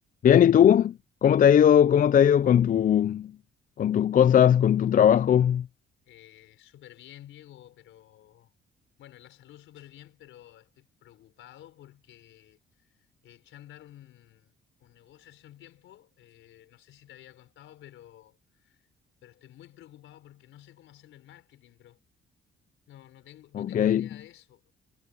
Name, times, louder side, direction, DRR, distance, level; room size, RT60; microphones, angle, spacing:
voice 1, 0.2-3.3 3.8-5.7 23.6-24.1, left 9 dB, 45° left, 0.4 m, -19 dB
voice 2, 6.0-8.5 9.0-14.5 14.8-18.9 19.2-22.0 22.9-24.7, left 12 dB, 80° left, 4.6 m, -52 dB
cardioid pair, 90°, 20 cm